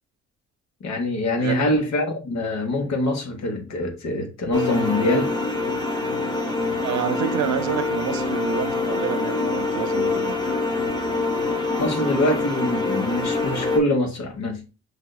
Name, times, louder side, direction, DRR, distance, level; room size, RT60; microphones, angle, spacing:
voice 1, 0.8-5.3 11.8-14.6, left 1 dB, 60° left, 1.2 m, -24 dB
voice 2, 1.4-1.8 6.8-10.4, right 11 dB, 70° right, 0.5 m, -29 dB
sound 1, 4.5-13.8, left 3 dB, 15° left, 0.9 m, -25 dB
6.6 x 2.7 x 2.2 m
cardioid pair, 90°, 30 cm